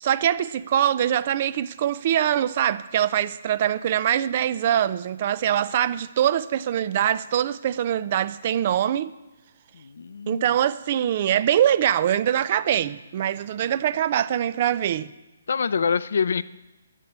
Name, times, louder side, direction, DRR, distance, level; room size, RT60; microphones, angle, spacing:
voice 1, 0.0-9.1 10.3-15.1, right 10 dB, 35° right, 0.4 m, -23 dB
voice 2, 9.7-10.4 15.5-16.4, left 6 dB, 65° left, 0.5 m, -25 dB
11.0 x 8.7 x 8.1 m
hypercardioid pair, 165°, 0 cm